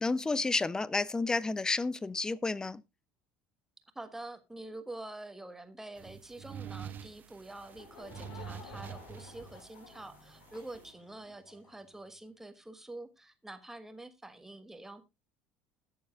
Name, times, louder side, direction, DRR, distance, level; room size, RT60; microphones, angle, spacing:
voice 1, 0.0-2.8, left 3 dB, 15° left, 0.5 m, -31 dB
voice 2, 3.9-15.0, right 2 dB, 5° right, 1.4 m, -46 dB
sound 1, 6.0-10.9, right 8 dB, 35° right, 1.3 m, -47 dB
Laughter / Crowd, 7.6-11.8, left 5 dB, 55° left, 2.3 m, -53 dB
20.5 x 7.0 x 2.4 m
figure-of-eight pair, 65°, 5 cm